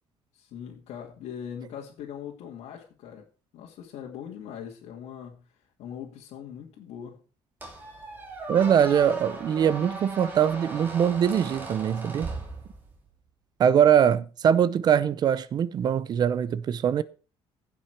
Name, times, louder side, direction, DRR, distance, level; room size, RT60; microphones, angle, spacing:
voice 1, 0.3-3.3 3.5-5.5 5.8-7.2, left 8 dB, 85° left, 2.3 m, -41 dB
Squeak, 7.6-13.1, right 3 dB, 15° right, 2.5 m, -38 dB
voice 2, 8.5-12.3 13.6-17.0, right 8 dB, 40° right, 0.6 m, -22 dB
16.0 x 5.9 x 4.6 m
cardioid pair, 175°, 11 cm